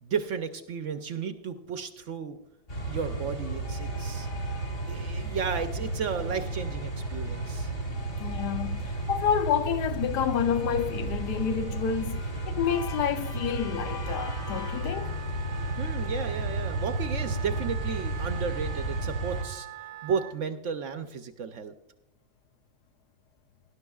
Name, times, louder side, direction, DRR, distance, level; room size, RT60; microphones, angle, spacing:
voice 1, 0.0-2.4 2.8-4.3 4.9-7.7 15.8-19.7 20.0-21.7, right 6 dB, 60° right, 0.8 m, -33 dB
sound 1, 2.7-19.4, right 2 dB, 45° left, 3.5 m, -33 dB
voice 2, 8.2-15.2, left 8 dB, 85° left, 1.3 m, -29 dB
Wind instrument woodwind instrument, 14.0-20.4, right 13 dB, 80° right, 1.2 m, -43 dB
18.5 x 11.5 x 2.3 m
omnidirectional pair, 1.7 m